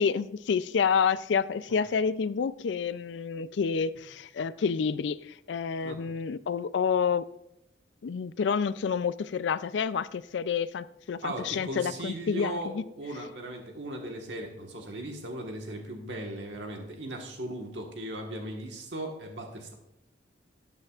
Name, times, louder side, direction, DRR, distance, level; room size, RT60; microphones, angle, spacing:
voice 1, 0.0-7.2 8.0-12.8, left 6 dB, 85° left, 16 dB, 0.4 m, -29 dB
voice 2, 11.2-19.7, right 1 dB, 80° right, 2 dB, 1.5 m, -38 dB
13.5 x 9.0 x 2.4 m, 0.79 s
head